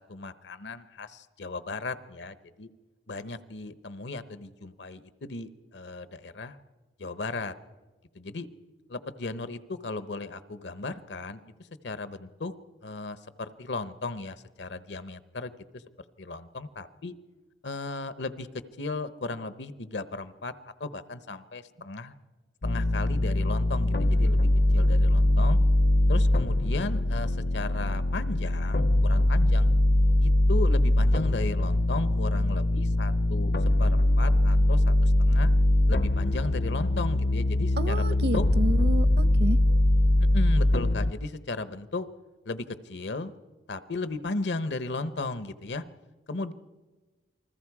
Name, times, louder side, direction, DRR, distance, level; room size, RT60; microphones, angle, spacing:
voice 1, 0.0-2.7 3.1-6.6 7.0-7.5 8.1-8.5 8.9-12.5 12.8-15.8 16.2-17.1 17.6-20.5 20.8-22.1 22.6-24.5 24.7-25.6 26.1-29.7 30.2-33.5 33.8-35.5 35.9-38.4 40.3-42.1 42.4-43.3 43.7-45.8 46.3-46.5, left 3 dB, 80° left, 13 dB, 0.9 m, -36 dB
sound 1, 22.6-41.1, left 1 dB, 55° left, 0.6 m, -22 dB
voice 2, 37.8-39.6, equal, 65° right, 15 dB, 0.8 m, -30 dB
28.5 x 20.5 x 4.8 m, 1.3 s
head